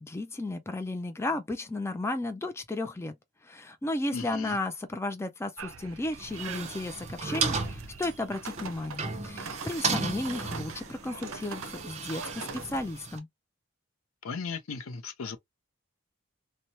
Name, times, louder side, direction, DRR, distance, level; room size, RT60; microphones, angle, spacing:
voice 1, 0.0-3.1 3.4-13.3, left 2 dB, 10° left, 0.4 m, -34 dB
voice 2, 4.1-4.6 14.2-15.4, left 5 dB, 75° left, 0.5 m, -36 dB
sound 1, 5.6-12.9, right 5 dB, 75° right, 0.5 m, -43 dB
sound 2, 6.2-13.2, right 4 dB, 35° right, 0.6 m, -35 dB
3.0 x 2.1 x 2.6 m
head